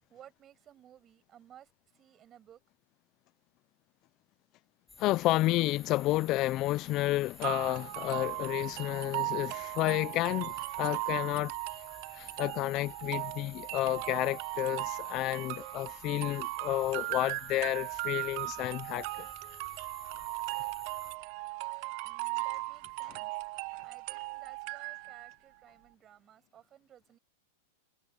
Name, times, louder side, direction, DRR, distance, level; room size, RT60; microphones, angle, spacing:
voice 1, 0.0-1.7 1.9-2.6 22.0-23.5 23.8-27.2, right 10 dB, 30° right, 7.8 m, -57 dB
sound 1, 4.9-21.2, left 3 dB, 10° left, 7.8 m, -53 dB
voice 2, 5.0-11.5 12.1-19.3 23.0-23.2, left 17 dB, 40° left, 0.6 m, -31 dB
sound 2, 7.4-25.3, right 27 dB, 50° right, 0.6 m, -38 dB
hypercardioid pair, 135°, 0 cm